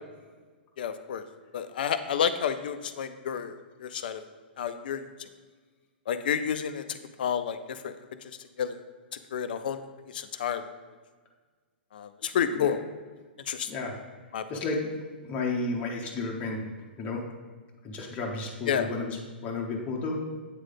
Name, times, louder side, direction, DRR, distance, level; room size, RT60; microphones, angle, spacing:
voice 1, 0.8-1.2 1.5-3.5 3.8-4.2 4.6-5.0 6.1-6.8 7.2-7.6 7.8-7.9 8.6-8.8 9.3-9.8 10.1-10.6 11.9-12.8 13.5-13.7 14.3-14.4 18.7-18.9, left 8 dB, 55° left, 11 dB, 0.4 m, -29 dB
voice 2, 13.7-14.0 14.5-15.0 15.2-16.7 17.0-17.3 17.8-20.2, left 3 dB, 25° left, -1 dB, 0.8 m, -32 dB
8.2 x 3.2 x 3.8 m, 1.4 s
figure-of-eight pair, 110°, 6 cm